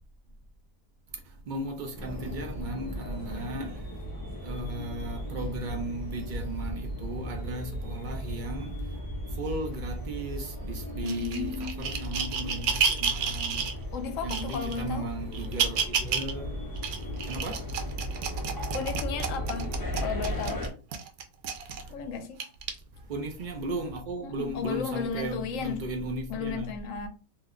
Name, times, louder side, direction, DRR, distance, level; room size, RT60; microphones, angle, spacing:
voice 1, 1.1-4.0 4.4-9.0 9.3-13.7 14.2-16.6 17.3-17.7 21.7-22.0 22.9-26.7, right 1 dB, 65° right, 0.5 m, -36 dB
sound 1, 2.0-20.7, equal, 25° left, 0.5 m, -36 dB
voice 2, 11.0-11.9 13.9-15.1 18.7-19.7 20.0-20.7 21.9-22.4 24.2-25.8 26.3-27.1, left 5 dB, 70° left, 0.9 m, -34 dB
sound 2, 11.1-13.8 14.3-14.8 15.3-16.3 16.8-21.9 22.4-22.7 23.4-23.5, right 6 dB, 85° right, 1.1 m, -31 dB
2.7 x 2.1 x 3.6 m
omnidirectional pair, 1.5 m